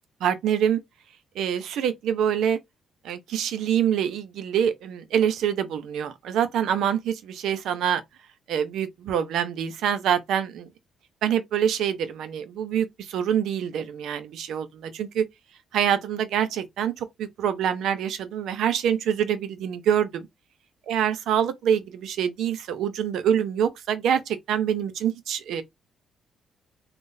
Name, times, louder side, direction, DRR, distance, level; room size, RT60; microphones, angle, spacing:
voice 1, 0.2-0.8 1.4-2.6 3.0-8.0 8.5-10.7 11.2-15.3 15.7-20.3 20.9-25.6, right 9 dB, 80° right, 0.6 m, -25 dB
3.7 x 2.4 x 2.6 m
cardioid pair, 90°, 0 cm